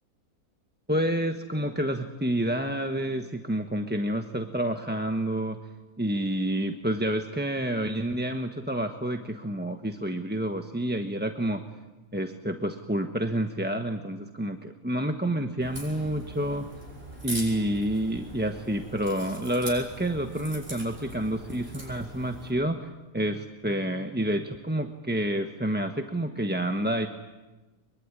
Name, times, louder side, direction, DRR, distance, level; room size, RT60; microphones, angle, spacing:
voice 1, 0.9-5.6 6.0-11.6 12.1-16.7 17.2-27.1, right 1 dB, 10° right, 5 dB, 1.0 m, -29 dB
Crack, 15.6-22.5, right 1 dB, 40° right, 7.7 m, -41 dB
24.0 x 23.0 x 9.9 m, 1.1 s
omnidirectional pair, 1.5 m